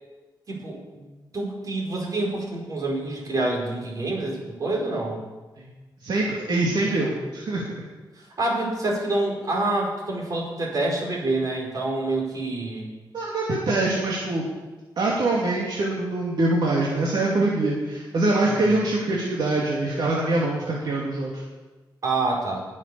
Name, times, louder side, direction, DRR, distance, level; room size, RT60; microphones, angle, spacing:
voice 1, 0.5-1.0 1.3-5.2 8.4-12.9 18.4-18.8 22.0-22.6, right 2 dB, 50° right, -2 dB, 4.9 m, -27 dB
voice 2, 6.0-7.6 13.1-14.5 15.0-21.4, right 2 dB, 65° right, -4 dB, 2.7 m, -24 dB
21.0 x 7.3 x 7.0 m, 1.2 s
wide cardioid pair, 135°, 8 cm